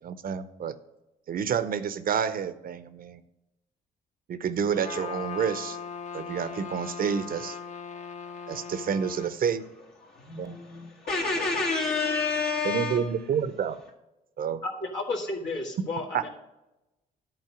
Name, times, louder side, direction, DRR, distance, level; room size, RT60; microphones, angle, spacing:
voice 1, 0.0-0.7 1.3-3.2 4.3-5.8 6.1-7.6 8.5-9.6 10.4-10.6 12.6-13.8 14.4-14.6 16.1-16.2, right 7 dB, 50° right, 0.7 m, -29 dB
Trumpet, 4.7-9.3, left 6 dB, 40° left, 0.9 m, -39 dB
voice 2, 10.0-13.1, left 4 dB, 60° left, 1.5 m, -29 dB
voice 3, 14.6-16.3, left 2 dB, 75° left, 1.9 m, -32 dB
11.0 x 4.3 x 6.0 m
hypercardioid pair, 55°, 19 cm